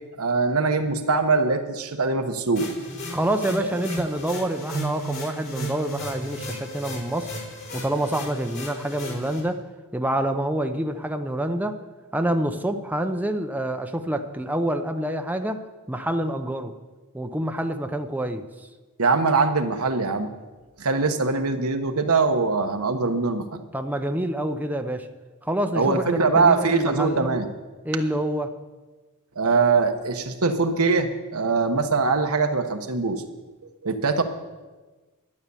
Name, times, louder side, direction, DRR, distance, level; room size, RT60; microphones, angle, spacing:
voice 1, 0.2-2.7 3.6-3.7 19.0-20.3 20.8-23.6 25.7-27.5 29.4-33.2 33.8-34.2, right 4 dB, 80° right, 6 dB, 1.1 m, -22 dB
sound 1, 2.5-9.4, equal, 55° left, 4.3 m, -35 dB
voice 2, 3.1-7.3 7.7-9.6 9.9-11.8 12.1-15.6 15.9-16.7 17.1-18.4 23.7-25.1 25.4-27.3 27.8-28.5, right 1 dB, 10° right, 6 dB, 0.6 m, -27 dB
12.0 x 9.6 x 7.0 m, 1.3 s
head